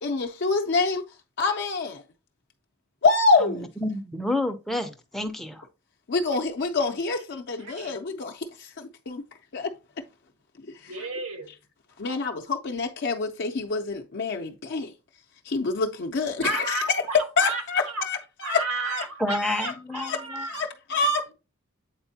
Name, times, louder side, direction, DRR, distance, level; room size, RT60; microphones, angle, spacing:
voice 1, 0.0-1.0 1.4-2.0 3.0-3.7 6.1-9.2 9.5-9.7 10.8-10.9 12.0-14.9 15.5-17.0 17.4-19.0 19.6-19.7 20.0-20.2 20.5-21.3, left 3 dB, 50° left, 0.5 m, -26 dB
voice 2, 3.4-5.7 19.2-20.5, left 1 dB, ahead, 0.5 m, -29 dB
voice 3, 7.6-7.9 10.9-11.5 16.4-18.0 18.4-20.6, right 3 dB, 85° right, 1.5 m, -32 dB
8.1 x 4.3 x 2.7 m
head